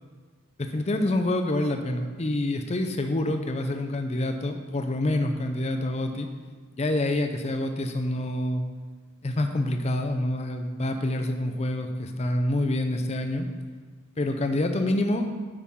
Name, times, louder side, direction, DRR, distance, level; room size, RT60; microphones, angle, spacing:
voice 1, 0.6-6.3 6.8-8.6 9.2-13.5 14.2-15.3, left 1 dB, 30° left, 6 dB, 0.5 m, -27 dB
8.4 x 5.7 x 3.6 m, 1.4 s
head